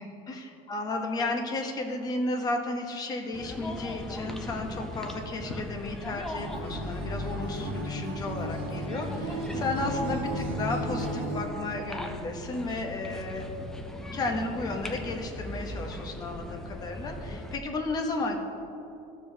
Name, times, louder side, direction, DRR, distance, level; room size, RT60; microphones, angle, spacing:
voice 1, 0.0-13.4 14.1-18.4, left 2 dB, 20° left, 3 dB, 0.7 m, -33 dB
sound 1, 3.3-17.6, left 1 dB, 5° left, 0.3 m, -39 dB
Acoustic guitar, 6.3-11.5, equal, 80° right, 1.6 m, -34 dB
13.5 x 6.9 x 2.7 m, 2.9 s
cardioid pair, 180°, 17 cm